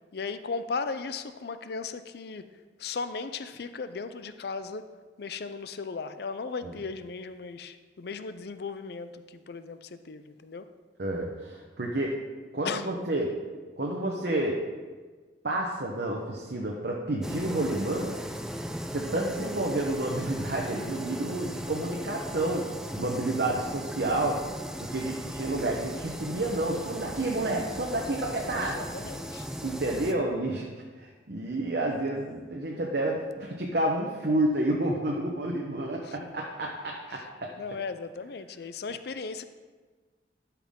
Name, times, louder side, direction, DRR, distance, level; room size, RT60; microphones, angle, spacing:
voice 1, 0.1-2.5 2.8-4.9 5.2-10.7 12.6-12.9 28.5-29.5 36.0-36.4 37.1-37.3 37.6-39.4, left 4 dB, 60° left, 11 dB, 0.5 m, -36 dB
voice 2, 11.0-12.2 12.5-13.3 13.8-14.6 15.4-18.1 18.9-22.7 23.0-24.4 24.8-28.8 29.6-30.7 31.0-37.5, right 1 dB, 60° right, -1 dB, 0.9 m, -30 dB
sound 1, 17.2-30.1, equal, 5° right, 0.4 m, -37 dB
12.5 x 5.8 x 3.7 m, 1.4 s
head